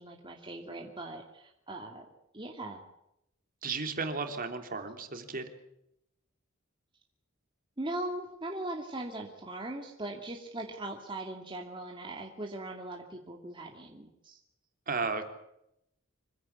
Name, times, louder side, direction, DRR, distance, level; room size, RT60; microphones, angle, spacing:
voice 1, 0.0-2.1 2.3-2.8 7.8-14.4, right 2 dB, 25° right, 1 dB, 2.4 m, -40 dB
voice 2, 3.6-5.5 14.9-15.3, right 4 dB, 45° right, 6 dB, 3.3 m, -34 dB
26.5 x 16.0 x 8.4 m, 0.80 s
head